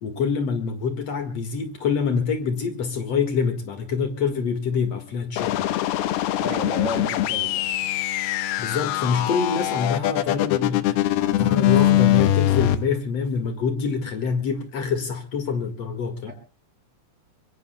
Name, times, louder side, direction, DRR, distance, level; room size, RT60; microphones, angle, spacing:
voice 1, 0.0-5.7 6.8-6.9 8.6-16.3, left 5 dB, 50° left, 8 dB, 2.3 m, -26 dB
sound 1, 5.4-12.8, left 13 dB, 75° left, 2.8 m, -22 dB
voice 2, 6.4-7.6 16.3-16.4, equal, 45° right, 4 dB, 4.6 m, -32 dB
24.0 x 22.5 x 2.3 m, 0.36 s
omnidirectional pair, 4.8 m